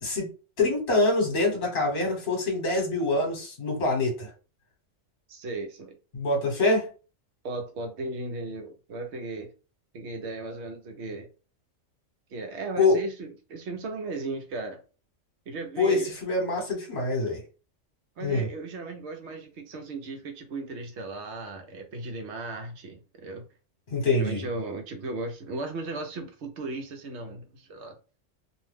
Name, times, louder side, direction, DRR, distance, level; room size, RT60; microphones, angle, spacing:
voice 1, 0.6-4.3 6.1-6.9 12.8-13.0 15.8-17.4 18.2-18.5 23.9-24.4, left 2 dB, 45° left, 1.2 m, -25 dB
voice 2, 5.3-6.0 7.4-9.5 9.9-11.3 12.3-14.8 15.5-16.1 18.2-23.5 24.1-28.0, right 2 dB, 65° right, 0.9 m, -36 dB
2.6 x 2.1 x 3.3 m
omnidirectional pair, 1.3 m